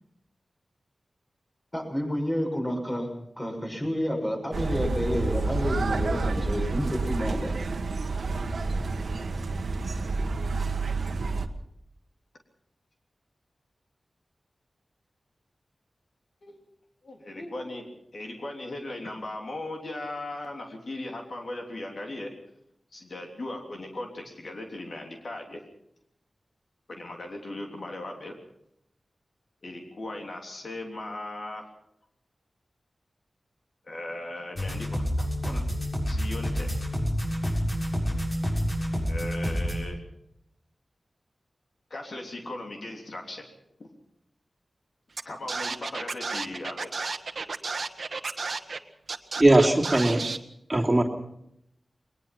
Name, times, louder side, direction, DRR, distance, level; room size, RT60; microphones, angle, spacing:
voice 1, 1.7-3.1 3.4-7.6, equal, 20° left, 1 dB, 6.7 m, -29 dB
sound 1, 4.5-11.5, right 3 dB, 85° right, 1.4 m, -29 dB
voice 2, 17.0-17.9 18.1-22.3 22.9-25.6 26.9-28.3 29.6-31.7 33.9-35.6 36.1-36.7 39.1-40.0 41.9-43.4 45.3-46.9, left 1 dB, 65° left, 2 dB, 3.3 m, -38 dB
sound 2, 34.6-39.8, equal, 40° left, 7.3 m, -28 dB
Scratching (performance technique), 45.2-45.3 45.5-48.8 49.1-50.4, right 4 dB, 65° right, 1.3 m, -32 dB
voice 3, 49.4-50.3 50.7-51.0, right 1 dB, 20° right, -1 dB, 2.9 m, -19 dB
21.5 x 20.0 x 6.0 m, 0.76 s
wide cardioid pair, 90°, 0 cm